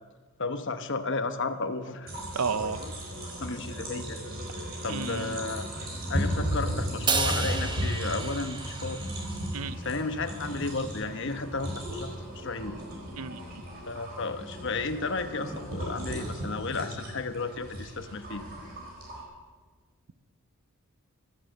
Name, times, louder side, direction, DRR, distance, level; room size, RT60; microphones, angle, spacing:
voice 1, 0.4-2.1 2.5-2.9 3.4-4.2 4.8-5.8 6.1-9.0 9.8-12.8 13.9-18.4, left 3 dB, 55° left, 9 dB, 1.0 m, -33 dB
sound 1, 2.1-19.2, equal, 45° right, 4.6 m, -35 dB
voice 2, 2.3-2.8 4.9-5.4 9.5-9.8 13.2-13.6, right 5 dB, 90° right, 15 dB, 0.7 m, -32 dB
Crash cymbal, 7.1-9.5, right 4 dB, 20° right, 1.0 m, -31 dB
13.5 x 11.5 x 7.8 m, 1.4 s
head